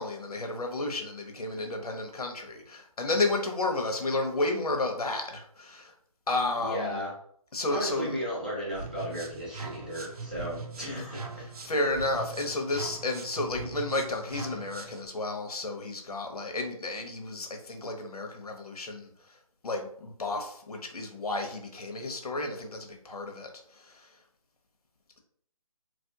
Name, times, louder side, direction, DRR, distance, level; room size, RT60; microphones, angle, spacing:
voice 1, 0.0-5.9 6.3-7.0 7.5-8.1 10.8-11.0 11.4-19.1 19.6-24.1, left 2 dB, 85° left, 4 dB, 0.9 m, -32 dB
voice 2, 6.6-7.1 7.7-11.2, equal, 15° right, -7 dB, 0.5 m, -34 dB
sound 1, 8.7-15.1, right 4 dB, 85° right, 0.6 m, -41 dB
3.0 x 2.5 x 2.8 m, 0.63 s
hypercardioid pair, 175°, 19 cm